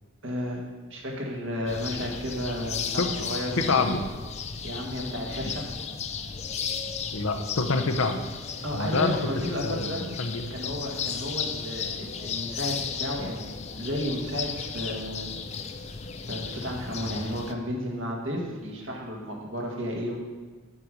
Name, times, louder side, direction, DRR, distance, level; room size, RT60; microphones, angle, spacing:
voice 1, 0.2-4.0 4.6-5.6 8.6-10.1 10.5-15.3 16.3-20.2, equal, 65° right, -2 dB, 1.8 m, -33 dB
sound 1, 1.7-17.5, left 6 dB, 30° left, 0.4 m, -35 dB
voice 2, 3.0-3.3 3.7-4.0 7.1-8.2 8.7-9.2 9.6-9.9 10.2-10.4, left 3 dB, 75° left, 5 dB, 0.8 m, -26 dB
7.3 x 5.4 x 6.4 m, 1.4 s
head